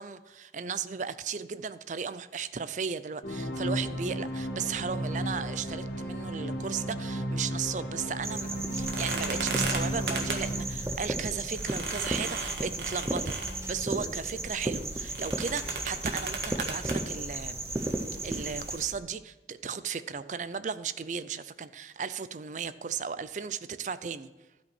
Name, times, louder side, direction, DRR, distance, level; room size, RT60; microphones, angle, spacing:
voice 1, 0.0-13.3 13.7-17.6 18.2-24.3, right 6 dB, 45° right, 14 dB, 0.4 m, -35 dB
sound 1, 3.2-11.7, right 1 dB, 60° left, 1.5 m, -34 dB
sound 2, 8.2-18.9, right 2 dB, 15° right, 0.8 m, -35 dB
sound 3, 8.8-19.0, right 3 dB, 75° right, 1.6 m, -38 dB
12.5 x 5.3 x 6.0 m, 1.2 s
head